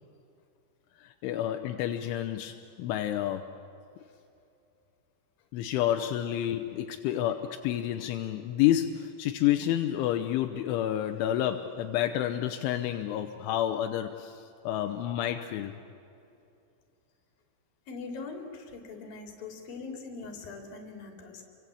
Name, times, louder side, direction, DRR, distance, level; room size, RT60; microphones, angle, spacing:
voice 1, 1.0-3.6 5.5-15.8, left 12 dB, 85° left, 6 dB, 3.3 m, -29 dB
voice 2, 17.9-21.4, left 4 dB, 50° left, 3 dB, 4.6 m, -42 dB
29.5 x 24.0 x 8.4 m, 2.7 s
omnidirectional pair, 5.6 m